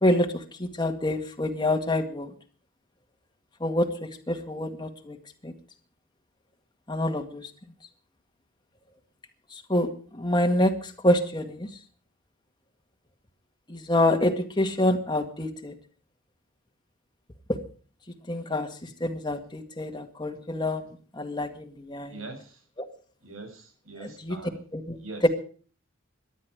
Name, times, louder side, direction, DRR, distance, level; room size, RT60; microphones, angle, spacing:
voice 1, 0.0-2.3 3.6-5.2 5.4-5.5 6.9-7.5 9.5-11.7 13.7-15.7 18.3-22.2 22.8-22.9 24.0-24.4 24.7-25.0 25.2-25.3, left 1 dB, 20° left, 4 dB, 2.0 m, -27 dB
voice 2, 22.0-22.6 23.2-24.6 25.0-25.3, right 2 dB, 80° right, 4 dB, 7.0 m, -42 dB
18.5 x 12.0 x 4.9 m, 0.42 s
head